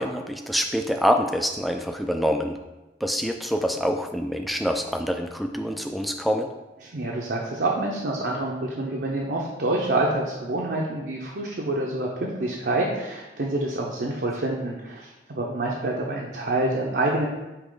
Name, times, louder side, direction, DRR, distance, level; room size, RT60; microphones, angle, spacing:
voice 1, 0.0-2.6 3.0-6.5, equal, ahead, 5 dB, 0.3 m, -26 dB
voice 2, 6.8-17.3, right 2 dB, 65° right, -2 dB, 0.7 m, -27 dB
8.4 x 2.9 x 3.8 m, 1.1 s
head